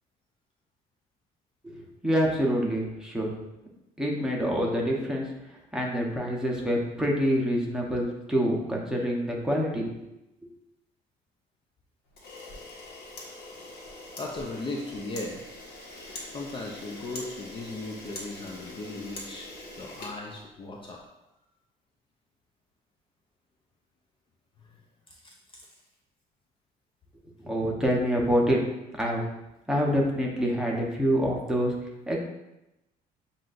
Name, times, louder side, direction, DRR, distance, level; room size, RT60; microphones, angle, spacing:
voice 1, 2.0-3.3 4.0-5.3 5.7-9.9 27.4-28.6 29.0-29.2 29.7-31.7 32.1-32.2, equal, 5° right, -3 dB, 0.9 m, -26 dB
Camera, 12.1-20.9, left 2 dB, 70° left, 1.2 m, -43 dB
voice 2, 14.2-15.4 16.3-19.5 19.8-21.0 25.2-25.7, left 2 dB, 30° left, 0 dB, 0.5 m, -37 dB
7.3 x 2.6 x 2.5 m, 0.93 s
cardioid pair, 110°, 17 cm